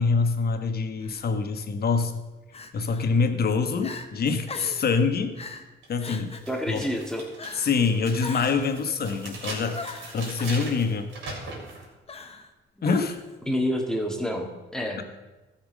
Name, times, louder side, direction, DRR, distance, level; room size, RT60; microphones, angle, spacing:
voice 1, 0.0-2.1 2.7-5.3 5.9-6.3 6.7-6.9 7.5-11.1 12.8-13.2, left 4 dB, 50° left, 8 dB, 1.3 m, -25 dB
Crying sobbing, 1.0-1.3 2.5-3.1 3.5-3.6 3.8-4.1 4.5-4.9 5.4-5.7 6.0-6.5 7.4-7.8 8.2-8.7 9.7-10.6 12.1-12.5 12.8-13.4, left 4 dB, 30° left, 1.1 m, -39 dB
sound 1, 5.8-5.9 6.4-11.8, right 3 dB, 80° right, 3.8 m, -40 dB
voice 2, 6.5-7.2 13.5-15.0, equal, 5° left, 2 dB, 2.0 m, -28 dB
14.0 x 5.9 x 6.4 m, 1.2 s
cardioid pair, 90°, 20 cm